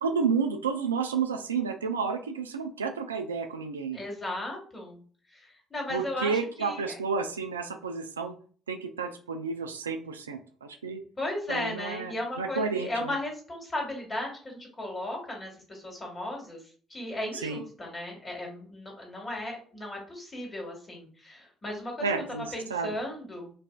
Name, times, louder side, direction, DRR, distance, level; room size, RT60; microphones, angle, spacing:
voice 1, 0.0-4.0 5.9-8.4 8.7-11.0 11.5-13.1 17.4-17.6 22.0-22.9, right 5 dB, 80° right, 6 dB, 0.3 m, -31 dB
voice 2, 3.9-5.0 5.7-6.3 6.6-7.0 11.2-16.6 16.9-22.1 22.5-23.5, left 1 dB, 25° left, 0 dB, 1.6 m, -35 dB
4.6 x 2.5 x 2.3 m, 0.44 s
figure-of-eight pair, 50°, 0 cm